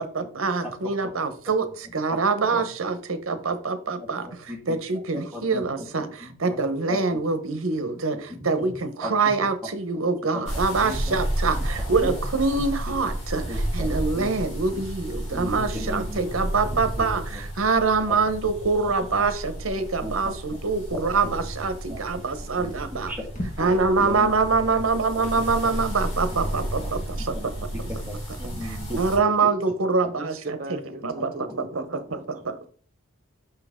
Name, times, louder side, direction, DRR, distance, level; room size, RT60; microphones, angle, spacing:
voice 1, 0.0-1.7 1.9-4.3 4.7-6.1 6.4-8.2 8.4-23.1 23.6-27.5 29.0-30.6 31.0-31.3 31.6-32.0 32.4-32.5, right 4 dB, 75° right, 11 dB, 0.9 m, -25 dB
voice 2, 2.1-2.6 4.0-4.1 4.5-4.8 5.1-6.6 6.9-7.0 7.8-7.9 8.1-8.7 9.0-9.1 10.3-10.4 10.8-11.2 11.5-11.6 12.0-12.1 12.5-12.9 13.5-13.9 14.1-14.4 14.7-14.8 15.3-16.2 16.6-17.4 18.1-18.2 19.2-19.3 20.0-20.3 21.9-22.0 22.6-22.7 23.1-23.2 23.6-23.7 24.0-24.3 24.7-24.9 25.4-25.5 26.8-26.9 27.3-27.5 27.7-29.0 29.6-29.7, left 1 dB, 10° right, -2 dB, 1.6 m, -36 dB
sound 1, 10.5-29.2, right 1 dB, 55° left, 3.4 m, -32 dB
sound 2, 22.6-23.8, equal, 35° left, 1.3 m, -44 dB
voice 3, 26.5-27.0 27.4-28.0 30.2-32.4, right 1 dB, 45° right, 5 dB, 0.9 m, -39 dB
5.8 x 5.7 x 3.6 m, 0.43 s
head